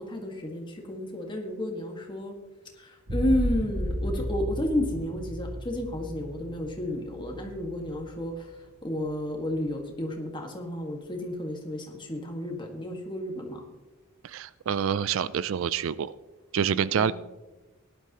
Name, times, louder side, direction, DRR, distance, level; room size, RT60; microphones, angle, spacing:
voice 1, 0.0-2.3 2.8-8.5 8.8-13.6 16.6-17.1, left 1 dB, 20° left, 2 dB, 1.7 m, -32 dB
sound 1, 3.1-8.5 9.0-9.6, equal, 80° right, 3.1 m, -34 dB
voice 2, 14.2-16.2 16.5-17.1, right 8 dB, 65° right, 17 dB, 0.3 m, -27 dB
17.5 x 11.5 x 3.0 m, 1.2 s
head